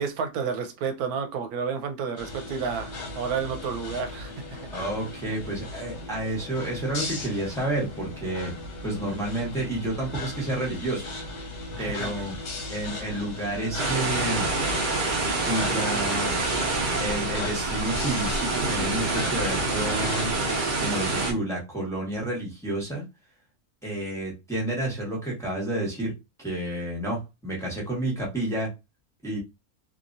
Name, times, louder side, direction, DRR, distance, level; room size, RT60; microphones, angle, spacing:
voice 1, 0.0-4.6 11.7-12.1, right 6 dB, 85° right, 1.1 m, -31 dB
sound 1, 2.2-20.6, left 2 dB, 55° left, 1.0 m, -37 dB
voice 2, 4.7-8.5 8.8-11.1 11.8-12.4 12.7-14.5 15.4-16.4 17.0-20.3 20.8-23.0 23.8-26.1 26.4-28.7 29.2-29.4, right 1 dB, ahead, 1.0 m, -30 dB
sound 2, 13.8-21.3, right 3 dB, 45° right, 0.7 m, -27 dB
2.9 x 2.6 x 2.6 m
omnidirectional pair, 1.6 m